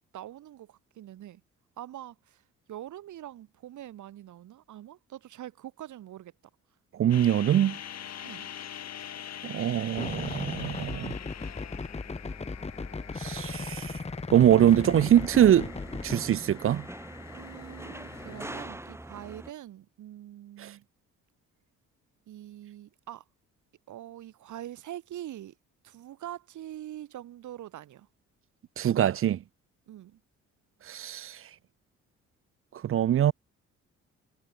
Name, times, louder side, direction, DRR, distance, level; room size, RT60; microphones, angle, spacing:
voice 1, 0.1-1.4 1.8-2.4 2.7-6.3 8.2-8.5 17.3-20.9 22.3-23.2 23.9-25.5 25.8-28.1 29.9-30.2, right 12 dB, 75° right, 3.1 m, -44 dB
voice 2, 6.9-7.8 9.4-11.1 13.2-13.9 14.3-15.7 16.0-16.9 20.6-20.7 28.8-29.4 30.9-31.4 32.8-33.3, right 11 dB, 45° right, 0.5 m, -23 dB
sound 1, 7.1-18.6, left 9 dB, 60° left, 3.2 m, -44 dB
sound 2, 10.0-16.2, left 3 dB, 20° left, 2.1 m, -37 dB
sound 3, 14.5-19.5, right 1 dB, 10° right, 2.7 m, -43 dB
cardioid pair, 90°, 30 cm